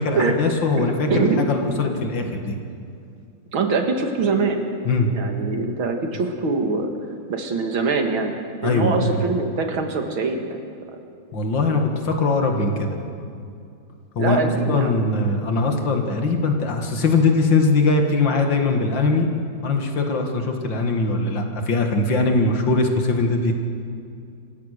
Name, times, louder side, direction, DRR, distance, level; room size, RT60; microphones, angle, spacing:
voice 1, 0.0-2.6 4.8-5.1 8.6-9.1 11.3-13.0 14.2-19.3 19.6-23.5, left 3 dB, 65° left, 4 dB, 2.6 m, -21 dB
voice 2, 0.7-1.8 2.2-2.3 3.5-4.6 5.1-6.9 7.3-8.3 8.6-10.6 12.7-13.0 14.2-15.0, right 4 dB, 85° right, 4 dB, 2.7 m, -23 dB
27.5 x 15.5 x 6.7 m, 2.5 s
omnidirectional pair, 2.2 m